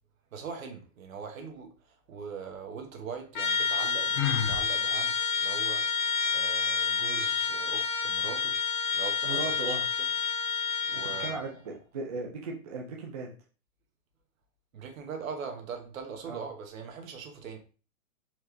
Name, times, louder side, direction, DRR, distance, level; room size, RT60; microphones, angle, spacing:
voice 1, 0.3-8.6 8.9-9.8 10.9-11.5 14.7-17.6, right 6 dB, 70° right, 1.3 m, -41 dB
Trumpet, 3.3-11.4, left 5 dB, 35° left, 0.5 m, -29 dB
Sigh, 4.2-4.7, left 8 dB, 75° left, 0.9 m, -29 dB
voice 2, 9.2-9.8 10.9-13.3 16.3-16.4, right 3 dB, 30° right, 0.4 m, -37 dB
4.5 x 3.0 x 3.3 m
hypercardioid pair, 170°, 42 cm